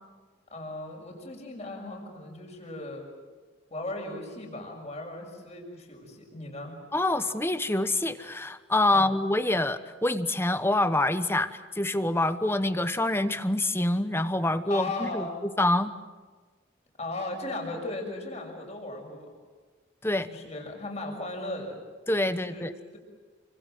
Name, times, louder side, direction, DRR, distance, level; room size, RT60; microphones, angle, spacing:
voice 1, 0.5-3.1 3.7-6.8 8.9-9.1 14.6-15.3 17.0-19.3 20.2-21.8 22.3-23.0, left 2 dB, 30° left, 2 dB, 6.4 m, -37 dB
voice 2, 6.9-15.9 20.0-20.3 22.1-22.7, left 2 dB, 10° left, 11 dB, 1.1 m, -26 dB
29.0 x 26.0 x 7.7 m, 1.4 s
head